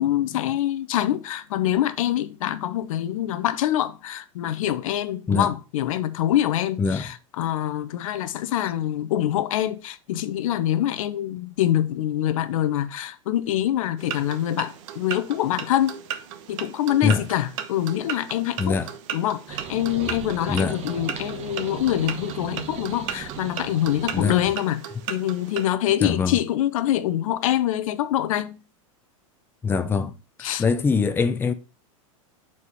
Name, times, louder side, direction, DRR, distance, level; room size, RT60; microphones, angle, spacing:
voice 1, 0.0-16.0 16.5-18.8 19.1-24.8 25.1-28.6 30.4-30.6, left 12 dB, 70° left, 0.7 m, -25 dB
sound 1, 14.0-25.7, right 9 dB, 60° right, 1.0 m, -36 dB
sound 2, 19.5-24.5, right 7 dB, 40° right, 1.2 m, -37 dB
voice 2, 20.5-20.8 24.1-24.4 26.0-26.4 29.6-30.1 30.6-31.5, left 5 dB, 10° left, 0.5 m, -23 dB
4.8 x 4.3 x 5.4 m
hypercardioid pair, 115°, 18 cm